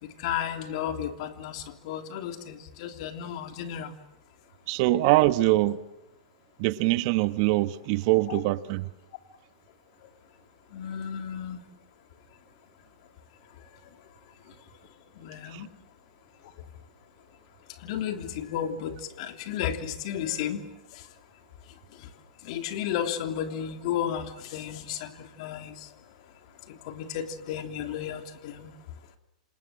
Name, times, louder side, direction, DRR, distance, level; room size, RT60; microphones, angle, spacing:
voice 1, 0.0-3.9 8.3-8.4 10.7-11.6 15.2-15.7 17.8-20.6 20.9-21.0 22.4-25.9 26.7-28.7, left 9 dB, 55° left, 6 dB, 3.2 m, -33 dB
voice 2, 4.7-5.8 6.6-8.9 15.5-15.6, right 18 dB, 50° right, 13 dB, 1.3 m, -23 dB
27.5 x 27.5 x 7.7 m, 0.90 s
hypercardioid pair, 120°, 4 cm